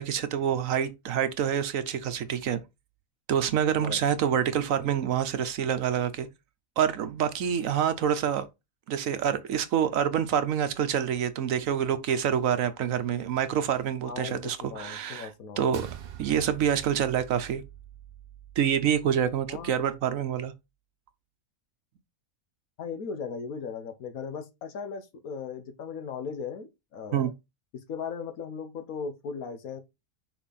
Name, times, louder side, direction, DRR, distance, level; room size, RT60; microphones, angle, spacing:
voice 1, 0.0-2.6 3.3-6.3 6.8-8.5 8.9-15.3 15.6-15.9 16.2-17.6 18.6-20.5 27.1-27.3, right 8 dB, 75° right, 1.1 m, -27 dB
voice 2, 14.0-15.6 19.5-19.9 22.8-27.3 27.9-29.8, left 6 dB, 80° left, 1.4 m, -37 dB
sound 1, 15.7-20.3, right 10 dB, 55° right, 0.7 m, -45 dB
6.1 x 4.1 x 4.1 m
omnidirectional pair, 1.5 m